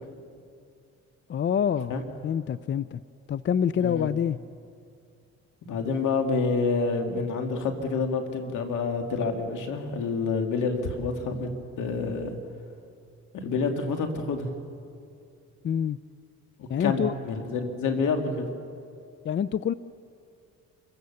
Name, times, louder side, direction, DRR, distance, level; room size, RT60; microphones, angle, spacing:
voice 1, 1.3-3.0 3.3-4.4 15.6-16.0 16.7-17.1 19.2-19.7, left 8 dB, 40° left, 16 dB, 0.5 m, -26 dB
voice 2, 3.8-4.1 5.6-11.5 11.8-12.3 13.3-14.5 16.6-18.5, left 4 dB, 80° left, 4 dB, 2.6 m, -28 dB
28.5 x 16.0 x 7.0 m, 2.4 s
cardioid pair, 90°, 30 cm